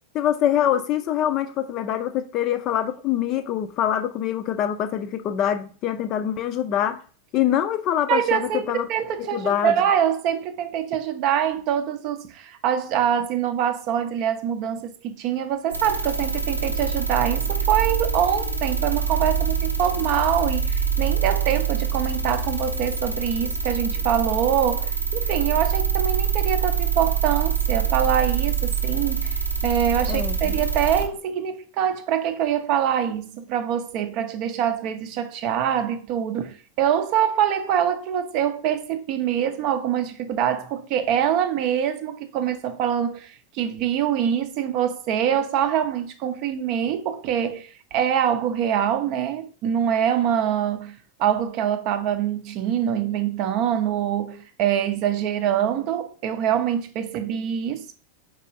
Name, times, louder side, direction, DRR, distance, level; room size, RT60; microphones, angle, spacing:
voice 1, 0.1-7.0 7.3-8.9 9.3-9.8 30.1-30.5, left 10 dB, 35° left, 0.5 m, -24 dB
voice 2, 8.1-57.9, right 9 dB, 40° right, 0.5 m, -24 dB
sound 1, 15.7-31.0, right 6 dB, 85° right, 0.9 m, -25 dB
4.5 x 4.1 x 2.7 m
figure-of-eight pair, 90°, 0 cm